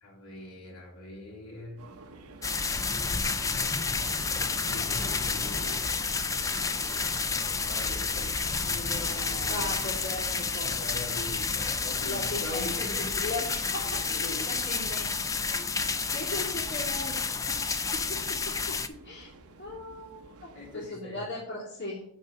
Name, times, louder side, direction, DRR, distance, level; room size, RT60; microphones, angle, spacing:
voice 1, 0.0-1.8 4.6-5.8 7.6-8.3 8.9-9.9 10.6-13.4 14.0-14.6 20.5-21.3, left 1 dB, 85° left, -4 dB, 3.5 m, -42 dB
sound 1, 1.8-20.9, right 2 dB, 85° right, 0.9 m, -50 dB
sound 2, 2.4-18.9, left 4 dB, 15° left, 0.4 m, -30 dB
voice 2, 8.6-10.8 12.1-12.7 13.2-15.2 16.1-18.2 19.0-19.3 19.6-22.0, left 2 dB, 55° left, -5 dB, 2.5 m, -38 dB
9.1 x 4.0 x 6.5 m, 0.65 s
head